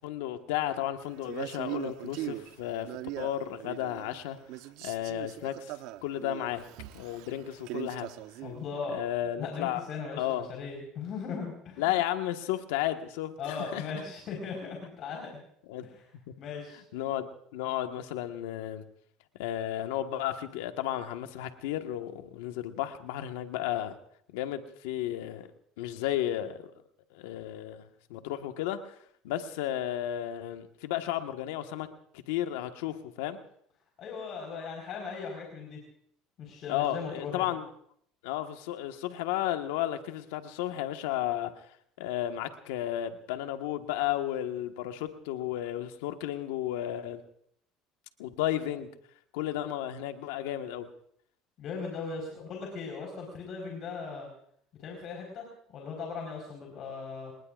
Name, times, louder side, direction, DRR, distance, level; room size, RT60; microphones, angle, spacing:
voice 1, 0.0-2.9 3.2-4.4 4.8-6.6 6.9-8.1 8.9-9.8 10.2-10.5 11.8-13.9 15.7-15.9 16.7-18.8 19.4-23.9 24.3-25.5 25.8-26.6 27.1-29.0 29.2-31.9 32.3-33.4 36.7-37.7 38.2-41.7 42.0-47.2 48.2-48.9 49.3-50.9, left 12 dB, 90° left, 6 dB, 1.5 m, -33 dB
Male speech man speaking, 1.2-4.2 4.5-8.6, right 16 dB, 75° right, 0.9 m, -40 dB
voice 2, 8.4-9.0 9.4-11.9 13.4-15.4 15.8-15.9 16.4-16.8 34.0-35.8 36.4-37.5 51.6-54.3 54.8-57.3, left 5 dB, 55° left, 0 dB, 4.7 m, -38 dB
28.0 x 19.5 x 2.5 m, 0.67 s
supercardioid pair, 110°, 0 cm